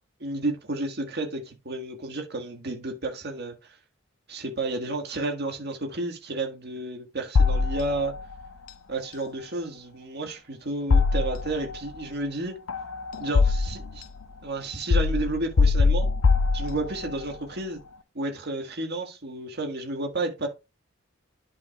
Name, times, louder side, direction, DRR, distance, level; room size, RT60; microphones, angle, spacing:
voice 1, 0.2-3.5 4.3-8.1 8.9-12.5 13.2-14.0 14.4-16.1 16.5-17.8 18.1-20.5, right 2 dB, 55° right, 1.6 m, -31 dB
sound 1, 7.4-8.2 10.9-11.8 12.7-14.0 14.9-17.1, left 4 dB, 85° left, 0.6 m, -22 dB
10.5 x 5.7 x 2.3 m
head